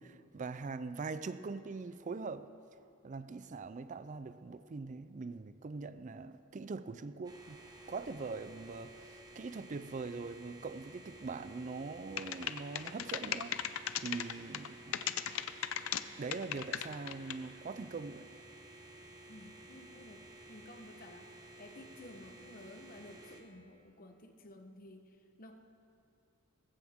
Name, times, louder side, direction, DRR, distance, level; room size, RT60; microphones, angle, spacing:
voice 1, 0.0-2.5 3.0-7.6 7.9-15.1 16.2-18.3, right 4 dB, 40° right, 12 dB, 0.4 m, -42 dB
sound 1, 7.2-23.4, right 1 dB, 20° right, 1.3 m, -54 dB
sound 2, 12.2-14.7 14.9-16.0 16.3-17.5, left 10 dB, 85° left, 0.6 m, -36 dB
voice 2, 19.3-25.6, left 1 dB, 45° left, 6 dB, 1.0 m, -53 dB
20.0 x 15.5 x 3.6 m, 2.7 s
head